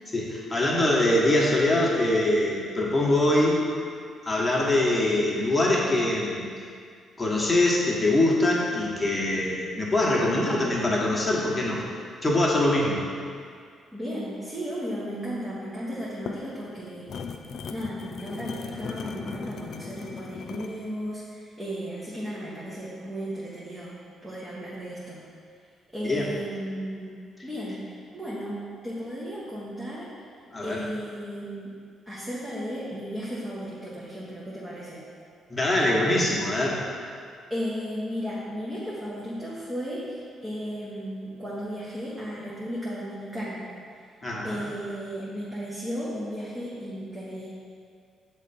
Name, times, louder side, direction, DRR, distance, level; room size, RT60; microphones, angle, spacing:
voice 1, 0.1-3.6 4.2-6.5 7.2-11.8 12.2-13.0 26.0-26.3 30.5-30.8 35.5-36.9 44.2-44.6, left 1 dB, 15° left, -4 dB, 1.3 m, -23 dB
voice 2, 13.9-17.1 17.7-25.2 25.9-30.1 30.6-31.7 32.1-35.0 37.5-43.6 44.4-47.5, equal, 15° right, -8 dB, 1.2 m, -35 dB
sound 1, 16.0-20.8, left 5 dB, 60° left, 0.4 m, -37 dB
7.2 x 3.3 x 4.2 m, 2.2 s
cardioid pair, 90°, 0 cm